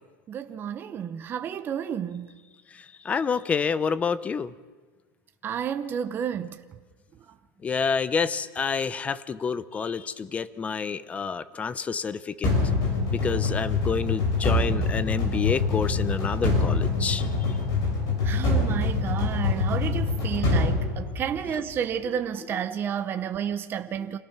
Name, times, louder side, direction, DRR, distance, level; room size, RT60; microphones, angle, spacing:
voice 1, 0.3-2.3 5.4-6.6 18.1-24.2, right 8 dB, 20° right, 8 dB, 0.8 m, -31 dB
voice 2, 3.0-4.5 7.6-12.5 13.1-17.3, left 5 dB, 15° left, 15 dB, 0.6 m, -28 dB
sound 1, 12.4-21.6, left 3 dB, 35° left, 7.0 m, -25 dB
27.0 x 17.5 x 5.9 m, 1.3 s
supercardioid pair, 165°, 10 cm